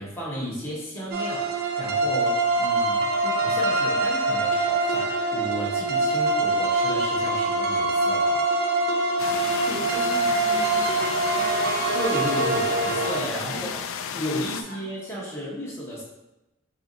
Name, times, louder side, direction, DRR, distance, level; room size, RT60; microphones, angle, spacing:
voice 1, 0.0-8.4 11.9-13.7 14.1-16.0, equal, 15° left, -7 dB, 1.3 m, -33 dB
sound 1, 1.1-13.2, right 2 dB, 50° right, 0.5 m, -24 dB
sound 2, 9.2-14.6, left 7 dB, 75° left, 0.3 m, -33 dB
voice 2, 9.4-11.9 13.5-13.7 14.7-14.9, right 1 dB, 60° left, -4 dB, 1.1 m, -38 dB
4.2 x 2.8 x 3.8 m, 0.94 s
head